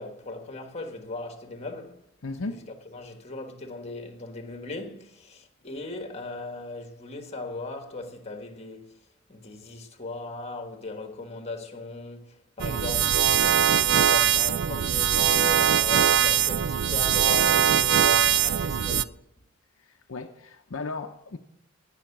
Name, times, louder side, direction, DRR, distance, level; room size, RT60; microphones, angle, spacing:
voice 1, 0.0-2.0 2.5-2.6 2.9-9.0 9.3-19.2, left 2 dB, 30° left, 1.5 m, -38 dB
voice 2, 2.2-2.7 20.1-21.4, left 3 dB, 70° left, 0.7 m, -35 dB
sound 1, 12.6-19.0, right 9 dB, 60° right, 0.4 m, -22 dB
17.0 x 5.7 x 7.2 m
head